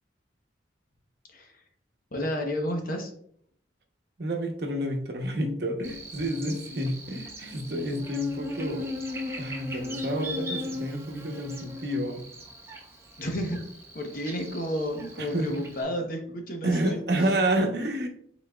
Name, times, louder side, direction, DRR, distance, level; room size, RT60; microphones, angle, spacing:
voice 1, 1.3-1.6 2.1-3.1 13.2-13.6 13.9-17.0, equal, 50° left, 3 dB, 0.9 m, -31 dB
voice 2, 4.2-8.9 9.4-12.2 15.2-15.5 16.6-18.1, right 1 dB, 60° right, 3 dB, 0.8 m, -29 dB
Buzz, 5.8-15.8, left 1 dB, 15° right, 0.7 m, -38 dB
5.7 x 4.0 x 2.3 m, 0.63 s
head